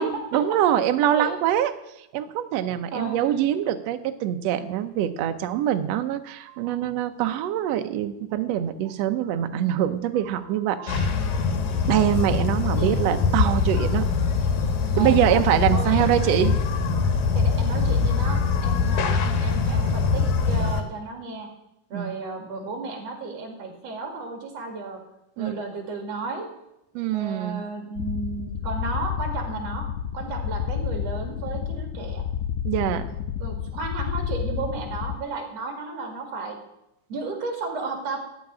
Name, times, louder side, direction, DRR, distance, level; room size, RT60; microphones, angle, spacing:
voice 1, 0.0-1.7 2.1-11.1 11.9-14.1 15.0-16.5 21.9-22.1 25.4-25.5 26.9-27.6 32.6-33.1, right 11 dB, 80° right, 8 dB, 1.5 m, -24 dB
voice 2, 2.9-3.3 12.8-13.0 14.9-15.4 15.7-16.4 17.3-21.5 21.9-25.0 25.4-26.5 27.1-29.9 30.1-32.2 32.8-33.0 33.4-36.6 37.1-38.2, right 3 dB, 50° right, 3 dB, 3.0 m, -33 dB
sound 1, 10.9-20.8, left 4 dB, 65° left, 2.4 m, -23 dB
sound 2, 28.0-35.2, left 8 dB, 85° left, 2.4 m, -30 dB
14.5 x 5.3 x 9.4 m, 0.88 s
omnidirectional pair, 3.9 m